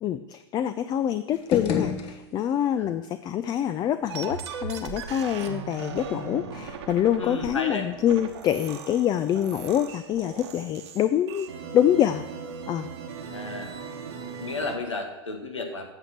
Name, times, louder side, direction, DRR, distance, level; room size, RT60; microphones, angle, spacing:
voice 1, 0.0-12.2 12.7-12.9, left 10 dB, 25° left, 11 dB, 0.4 m, -26 dB
sound 1, 1.3-2.8, left 7 dB, 45° left, 1.3 m, -30 dB
sound 2, 4.1-14.8, right 6 dB, 65° right, 1.3 m, -38 dB
voice 2, 7.2-7.9 13.3-13.7 14.4-15.9, left 3 dB, 90° left, 4 dB, 1.6 m, -33 dB
8.9 x 6.5 x 5.9 m, 1.0 s
hypercardioid pair, 100°, 15 cm